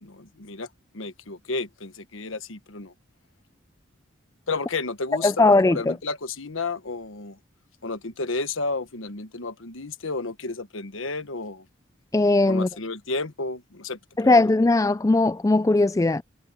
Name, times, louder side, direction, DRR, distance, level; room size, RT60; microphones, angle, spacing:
voice 1, 0.0-0.7 0.9-2.9 4.5-5.3 5.7-7.4 7.8-11.6 12.5-14.0 14.2-14.4, left 3 dB, 85° left, 1.4 m, -32 dB
voice 2, 5.2-6.0 12.1-12.7 14.2-16.2, left 2 dB, 15° left, 0.3 m, -19 dB
head